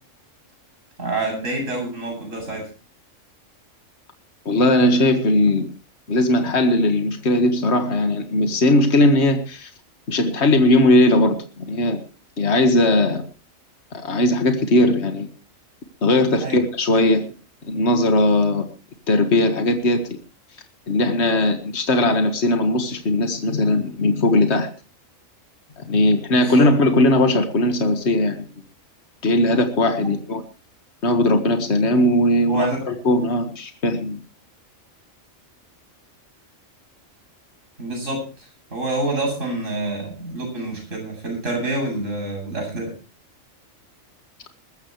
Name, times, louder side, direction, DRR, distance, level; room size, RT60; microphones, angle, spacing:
voice 1, 1.0-2.6 16.4-16.6 26.3-26.7 30.0-30.1 32.5-32.9 37.8-38.2 38.7-42.9, right 2 dB, 70° right, 1 dB, 8.6 m, -27 dB
voice 2, 4.5-5.7 6.1-9.7 10.1-12.0 12.4-13.2 13.9-15.3 16.0-17.2 17.6-18.7 19.1-20.2 20.9-24.7 25.8-28.5 29.2-30.4 31.0-34.2, left 1 dB, 55° left, 6 dB, 2.0 m, -18 dB
21.5 x 14.0 x 3.2 m, 0.35 s
omnidirectional pair, 1.4 m